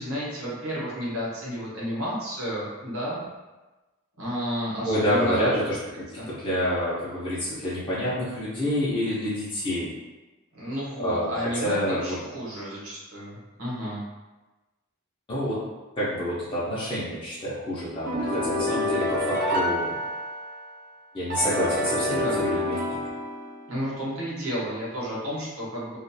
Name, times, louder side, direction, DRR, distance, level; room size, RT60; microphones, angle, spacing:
voice 1, 0.0-3.2 4.2-5.5 6.2-6.3 10.5-14.0 22.1-22.4 23.7-26.0, equal, 75° right, -7 dB, 1.0 m, -31 dB
voice 2, 4.8-9.9 11.0-11.3 11.6-12.2 15.3-15.6 16.0-19.9 21.1-23.0, equal, 25° left, -10 dB, 0.6 m, -28 dB
sound 1, 18.1-20.7 21.3-23.8, left 1 dB, 50° right, 0.5 m, -27 dB
2.8 x 2.4 x 2.2 m, 1.1 s
head